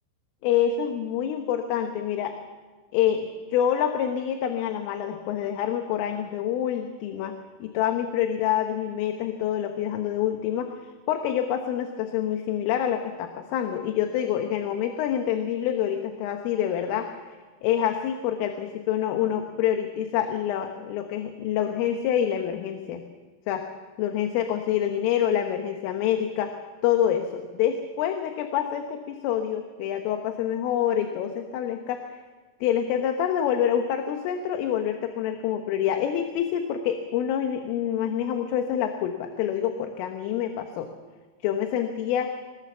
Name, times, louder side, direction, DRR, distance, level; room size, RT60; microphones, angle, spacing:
voice 1, 0.4-2.4 2.9-7.4 7.6-10.7 11.1-17.1 17.6-23.0 23.5-23.6 24.0-26.5 26.8-32.2 32.6-40.9 41.4-42.3, left 9 dB, 75° left, 5 dB, 3.8 m, -26 dB
26.5 x 20.0 x 7.4 m, 1.4 s
omnidirectional pair, 6.0 m